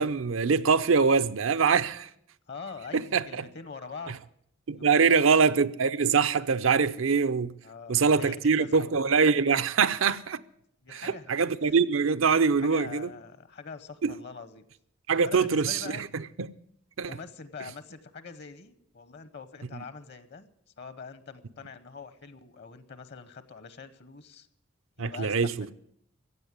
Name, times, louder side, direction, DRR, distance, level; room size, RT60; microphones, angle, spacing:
voice 1, 0.0-2.1 2.9-3.4 4.7-7.5 7.9-10.4 10.9-13.1 14.0-14.1 15.1-16.5 17.0-17.1 25.0-25.7, right 5 dB, 80° right, 0.6 m, -24 dB
voice 2, 2.5-4.2 4.8-5.4 7.6-8.9 10.8-11.7 12.6-14.6 15.2-16.0 17.0-20.5 20.8-24.5 25.0-25.3 25.6-25.7, left 5 dB, 55° left, 0.9 m, -44 dB
15.5 x 8.0 x 9.6 m
head